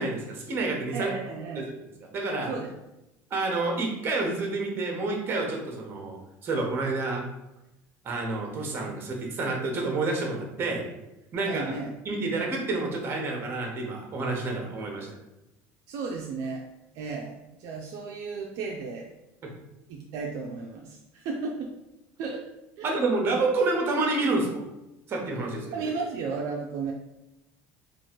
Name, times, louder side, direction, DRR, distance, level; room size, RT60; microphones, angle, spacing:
voice 1, 0.0-1.1 1.6-1.7 2.1-2.5 3.3-6.2 6.4-7.2 8.0-10.9 11.3-11.7 12.0-15.1 22.8-24.6 25.1-25.7, right 3 dB, 35° right, 1 dB, 1.0 m, -28 dB
voice 2, 0.9-1.7 2.5-2.7 11.5-11.9 15.9-16.6 16.9-19.1 19.9-21.7 22.2-22.4 22.8-22.9 25.7-26.9, right 4 dB, 65° right, 0 dB, 0.5 m, -34 dB
3.1 x 2.5 x 4.4 m, 0.94 s
cardioid pair, 130°, 6 cm